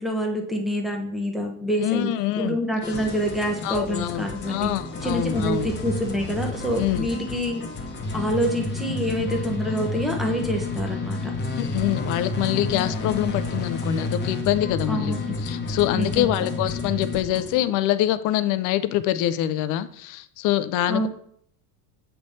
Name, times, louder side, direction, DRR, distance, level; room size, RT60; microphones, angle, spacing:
voice 1, 0.0-2.1 2.4-4.7 5.0-7.6 8.1-11.4 14.9-15.2 15.9-16.3 20.9-21.1, equal, ahead, 2 dB, 0.7 m, -26 dB
voice 2, 1.8-2.6 3.6-5.7 6.8-7.1 11.6-15.2 15.4-21.1, left 13 dB, 45° left, 13 dB, 0.4 m, -25 dB
sound 1, 2.8-17.6, left 3 dB, 25° left, 0.9 m, -30 dB
7.8 x 3.3 x 4.1 m, 0.64 s
cardioid pair, 140°, 45 cm